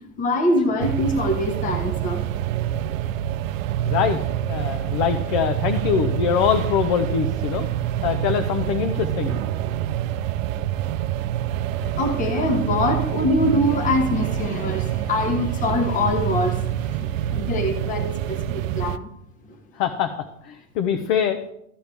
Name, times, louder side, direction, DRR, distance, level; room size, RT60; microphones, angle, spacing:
voice 1, 0.2-2.2 11.8-19.1, left 1 dB, 20° left, 5 dB, 1.2 m, -24 dB
sound 1, 0.8-19.0, right 12 dB, 70° right, 0.6 m, -26 dB
voice 2, 3.8-4.2 4.5-7.7 8.0-9.4 19.7-20.1 20.4-21.4, left 8 dB, 40° left, 7 dB, 0.8 m, -23 dB
13.5 x 7.8 x 3.4 m, 0.79 s
supercardioid pair, 140°, 41 cm